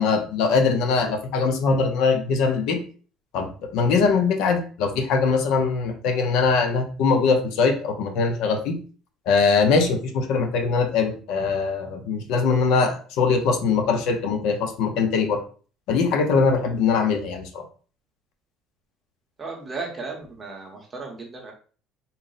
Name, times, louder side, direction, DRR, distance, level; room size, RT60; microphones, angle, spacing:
voice 1, 0.0-2.8 3.3-8.8 9.3-15.4 15.9-17.6, left 4 dB, 65° left, 6 dB, 0.6 m, -22 dB
voice 2, 19.4-21.5, right 3 dB, 20° right, 0 dB, 0.8 m, -35 dB
4.0 x 2.0 x 3.8 m, 0.40 s
cardioid pair, 175°, 0 cm